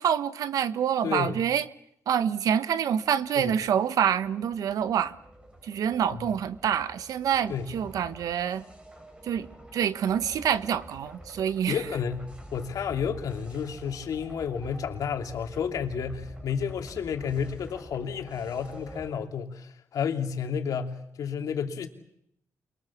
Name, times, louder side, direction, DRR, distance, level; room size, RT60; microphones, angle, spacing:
voice 1, 0.0-1.6 2.1-5.1 5.6-8.6 9.2-9.5 9.7-11.8, right 8 dB, 80° right, 1.2 m, -26 dB
voice 2, 1.0-1.4 3.4-3.6 7.5-7.7 11.7-21.9, left 7 dB, 75° left, 2.8 m, -31 dB
sound 1, 3.0-19.1, right 1 dB, 20° right, 5.0 m, -47 dB
28.0 x 22.5 x 7.3 m
cardioid pair, 100°, 6 cm